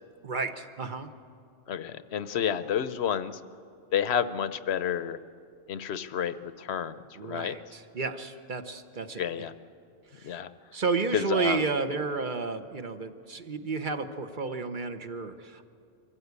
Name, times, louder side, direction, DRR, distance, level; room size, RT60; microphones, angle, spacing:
voice 1, 0.2-1.1 7.2-9.2 10.1-10.4 10.7-15.6, right 4 dB, 50° right, 8 dB, 1.0 m, -32 dB
voice 2, 1.7-3.4 3.9-5.2 5.7-7.6 9.2-9.5 10.2-10.5 11.1-11.6, left 8 dB, 75° left, 13 dB, 0.9 m, -30 dB
24.0 x 15.5 x 8.2 m, 2.4 s
omnidirectional pair, 1.1 m